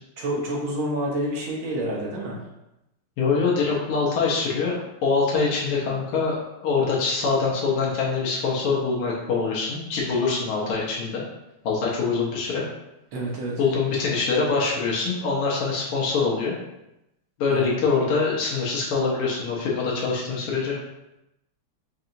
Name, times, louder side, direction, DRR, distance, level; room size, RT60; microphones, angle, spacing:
voice 1, 0.2-2.4 13.1-13.6 17.5-17.8, right 1 dB, 70° right, -3 dB, 1.6 m, -28 dB
voice 2, 3.2-4.7 5.0-6.4 6.6-11.2 11.6-12.6 13.6-16.6 17.4-20.8, left 4 dB, 85° left, -4 dB, 1.8 m, -24 dB
5.2 x 2.8 x 2.6 m, 0.91 s
omnidirectional pair, 2.4 m